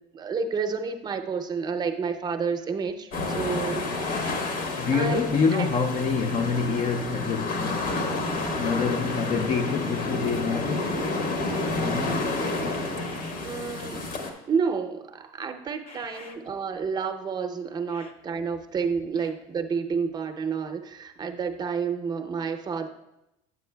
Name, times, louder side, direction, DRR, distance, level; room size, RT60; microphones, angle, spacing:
voice 1, 0.1-4.3 4.9-5.2 5.5-5.7 13.4-14.0 14.5-22.9, right 5 dB, 25° right, 0.6 m, -30 dB
sound 1, 3.1-14.3, left 2 dB, 60° left, 1.1 m, -29 dB
voice 2, 4.8-8.3 8.6-11.0 11.3-13.5 15.9-16.4 17.9-18.1 19.2-19.3, left 5 dB, 40° left, 0.4 m, -28 dB
9.0 x 8.0 x 2.2 m
supercardioid pair, 115°, 16 cm